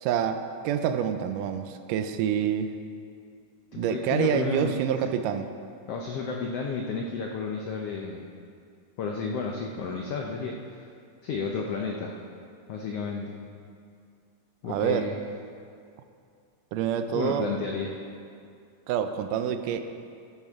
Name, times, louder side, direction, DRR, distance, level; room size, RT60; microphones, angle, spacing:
voice 1, 0.0-2.7 3.8-5.5 14.7-15.1 16.7-17.5 18.9-19.8, right 8 dB, 85° right, 8 dB, 2.2 m, -27 dB
voice 2, 3.7-4.7 5.9-8.3 9.0-10.9 11.2-12.2 12.7-13.4 14.6-15.2 17.1-18.0, left 4 dB, 80° left, 0 dB, 1.3 m, -32 dB
14.0 x 10.0 x 3.6 m, 2.4 s
omnidirectional pair, 3.7 m